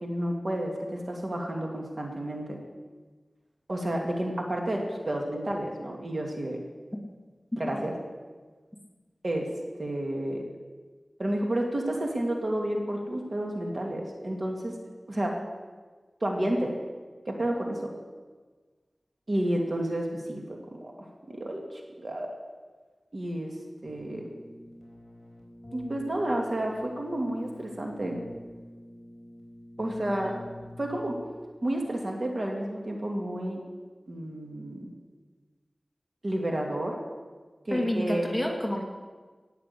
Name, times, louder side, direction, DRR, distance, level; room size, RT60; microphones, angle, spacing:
voice 1, 0.0-2.6 3.7-6.6 7.6-7.9 9.2-9.5 9.8-10.4 11.2-14.7 15.1-15.4 16.2-16.8 17.3-17.9 19.3-22.3 23.1-23.5 23.8-24.3 25.7-28.2 29.8-30.4 30.8-31.2 31.6-33.6 34.1-34.9 36.2-37.0 37.7-38.4, right 1 dB, 50° right, 0 dB, 2.5 m, -31 dB
Keyboard (musical), 23.8-31.4, left 1 dB, 45° left, 4.8 m, -46 dB
voice 2, 37.7-38.8, left 1 dB, 5° left, 0 dB, 2.4 m, -28 dB
18.0 x 6.8 x 8.5 m, 1.4 s
wide cardioid pair, 70°, 0 cm